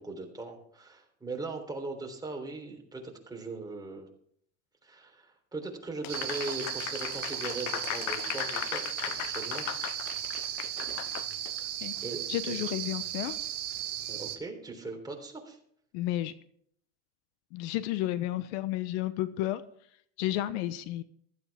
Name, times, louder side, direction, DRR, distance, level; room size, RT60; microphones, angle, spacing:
voice 1, 0.0-4.1 4.8-9.7 11.6-11.7 12.0-12.5 14.1-15.6, right 3 dB, 10° right, 2 dB, 3.4 m, -39 dB
Applause, 6.0-11.6, left 19 dB, 50° left, 0.5 m, -37 dB
sound 1, 6.1-14.4, right 11 dB, 90° right, 1.6 m, -36 dB
voice 2, 12.3-13.4 15.9-16.3 17.5-19.6 20.2-21.0, left 14 dB, 65° left, 14 dB, 1.0 m, -32 dB
15.5 x 12.5 x 3.5 m, 0.64 s
supercardioid pair, 105°, 36 cm